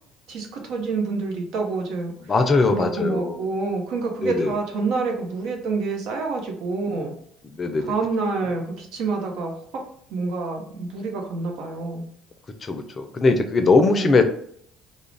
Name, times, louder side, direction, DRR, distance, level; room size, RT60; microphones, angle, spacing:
voice 1, 0.3-2.1 2.7-7.1 7.9-9.5 10.1-12.0 13.9-14.1, right 3 dB, 70° right, 2 dB, 0.6 m, -27 dB
voice 2, 2.3-3.4 4.2-4.5 7.6-7.9 12.6-14.2, left 3 dB, 35° left, 7 dB, 0.4 m, -20 dB
2.4 x 2.0 x 3.1 m, 0.65 s
supercardioid pair, 80°, 0 cm